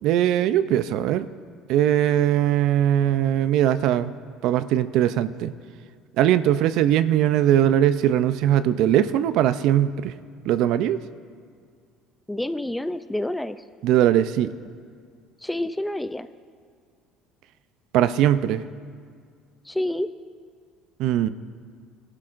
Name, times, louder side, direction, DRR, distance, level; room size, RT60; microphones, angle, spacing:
voice 1, 0.0-1.3 1.7-4.1 4.4-5.5 6.2-10.1 10.5-11.0 13.8-14.5 17.9-18.6 21.0-21.3, right 11 dB, 65° right, 13 dB, 0.4 m, -20 dB
voice 2, 12.3-13.6 15.4-16.3 19.7-20.1, left 1 dB, 5° left, 12 dB, 0.3 m, -28 dB
20.0 x 12.0 x 2.5 m, 2.1 s
cardioid pair, 145°, 0 cm